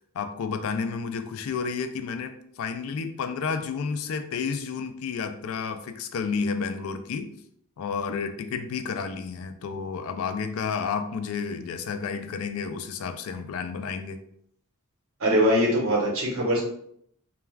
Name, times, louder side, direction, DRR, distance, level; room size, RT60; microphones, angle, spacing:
voice 1, 0.1-7.3 7.8-14.2, left 5 dB, 65° left, 9 dB, 0.3 m, -31 dB
voice 2, 15.2-16.6, equal, 65° right, -2 dB, 0.9 m, -22 dB
2.3 x 2.3 x 3.2 m, 0.69 s
head